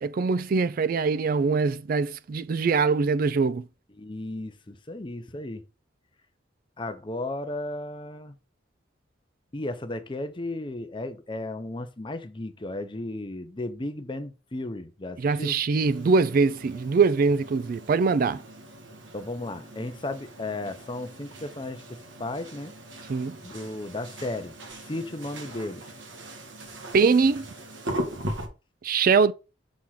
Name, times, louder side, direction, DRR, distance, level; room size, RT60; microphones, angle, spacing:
voice 1, 0.0-3.6 15.2-18.4 23.1-23.4 26.9-27.5 28.8-29.3, right 4 dB, 50° right, 0.3 m, -23 dB
voice 2, 4.0-5.6 6.8-8.3 9.5-15.6 19.1-22.7 23.4-24.5 24.9-25.8, left 2 dB, 25° left, 0.7 m, -34 dB
sound 1, 15.8-28.5, right 1 dB, 80° right, 1.5 m, -40 dB
6.3 x 3.5 x 5.7 m
head